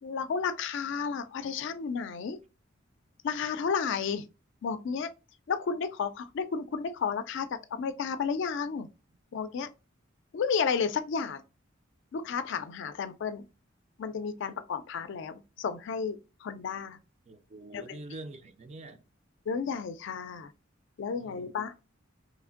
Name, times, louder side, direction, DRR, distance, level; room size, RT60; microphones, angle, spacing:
voice 1, 0.0-2.4 3.2-4.3 4.6-5.1 5.5-8.9 9.3-9.7 10.3-11.4 12.1-13.4 14.0-17.0 17.7-18.0 19.5-20.5 21.0-21.7, left 6 dB, 65° left, 0.4 m, -32 dB
voice 2, 17.3-19.1 21.2-21.6, right 2 dB, 35° right, 0.4 m, -45 dB
3.1 x 2.5 x 2.4 m
head